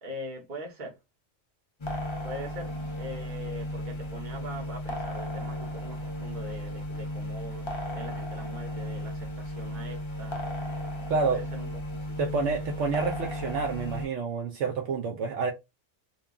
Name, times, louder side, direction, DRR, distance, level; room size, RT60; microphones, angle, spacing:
voice 1, 0.0-1.0 2.2-10.4 11.2-12.2, equal, 40° right, 1.0 m, -42 dB
sound 1, 1.8-14.1, left 1 dB, 40° left, 0.4 m, -35 dB
voice 2, 11.1-11.4 12.2-15.5, right 4 dB, 75° right, 0.9 m, -28 dB
2.9 x 2.3 x 2.3 m
omnidirectional pair, 1.3 m